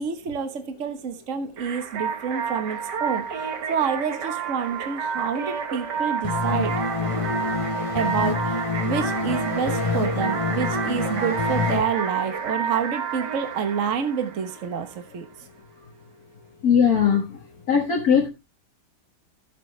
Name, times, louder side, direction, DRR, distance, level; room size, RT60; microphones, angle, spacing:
voice 1, 0.0-6.7 7.7-15.2, right 7 dB, 50° right, 1.5 m, -28 dB
sound 1, 1.6-15.0, right 6 dB, 90° right, 2.0 m, -30 dB
sound 2, 6.2-11.8, left 4 dB, 25° left, 0.8 m, -27 dB
voice 2, 16.6-17.2 17.7-18.3, left 7 dB, 60° left, 1.9 m, -19 dB
13.5 x 7.6 x 3.2 m
omnidirectional pair, 1.8 m